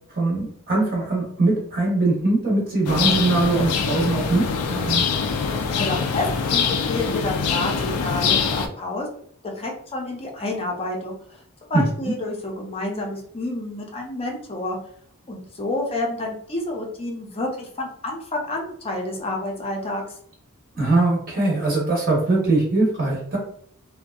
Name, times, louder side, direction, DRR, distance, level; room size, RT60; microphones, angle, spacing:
voice 1, 0.1-5.0 11.7-11.8 20.7-23.4, right 2 dB, 40° right, -3 dB, 0.8 m, -21 dB
sound 1, 2.8-8.7, left 6 dB, 90° left, 0.4 m, -24 dB
voice 2, 5.8-9.1 9.6-11.4 11.7-14.8 15.3-20.0, left 2 dB, 25° left, 0 dB, 0.6 m, -29 dB
2.6 x 2.2 x 2.3 m, 0.62 s
head